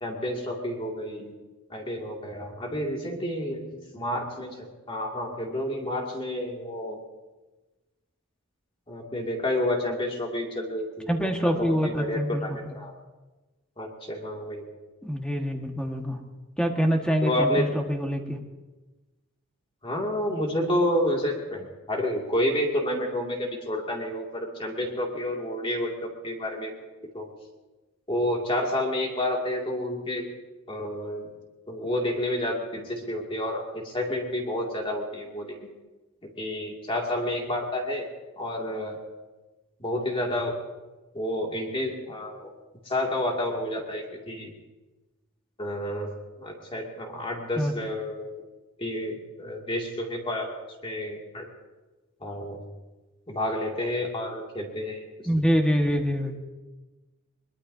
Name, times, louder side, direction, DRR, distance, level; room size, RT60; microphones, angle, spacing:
voice 1, 0.0-1.3 1.7-7.0 8.9-12.9 13.8-14.6 17.2-17.7 19.8-26.7 27.1-27.3 28.1-30.3 30.7-31.3 31.7-35.7 36.4-38.1 38.4-39.0 39.8-40.6 41.1-42.5 42.9-44.5 45.6-48.4 48.8-50.5 50.8-51.5 52.2-52.6 53.3-55.0, left 1 dB, 25° left, -1 dB, 2.4 m, -30 dB
voice 2, 11.1-12.8 15.0-16.2 16.6-18.4 47.5-47.7 55.2-56.5, equal, 5° left, 2 dB, 1.6 m, -25 dB
22.0 x 22.0 x 2.8 m, 1.2 s
head